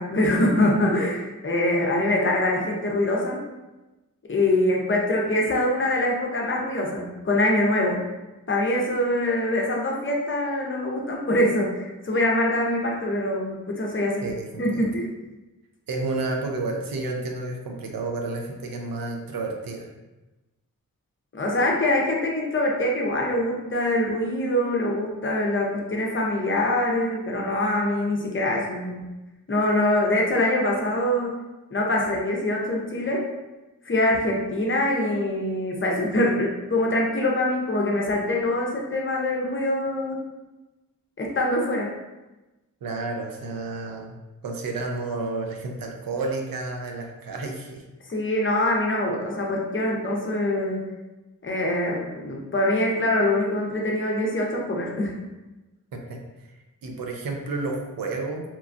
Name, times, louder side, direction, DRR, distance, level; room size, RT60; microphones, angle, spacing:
voice 1, 0.0-3.4 4.3-8.1 8.5-14.2 14.6-15.1 21.3-29.1 29.5-31.3 31.7-33.3 33.8-40.2 41.2-41.9 48.1-50.9 51.4-55.2, left 1 dB, 35° left, -1 dB, 0.6 m, -24 dB
voice 2, 14.2-14.9 15.9-19.9 42.8-47.8 55.9-56.2 56.8-58.4, right 3 dB, 80° right, 1 dB, 0.6 m, -31 dB
3.0 x 2.3 x 2.5 m, 1.1 s
cardioid pair, 70°, 34 cm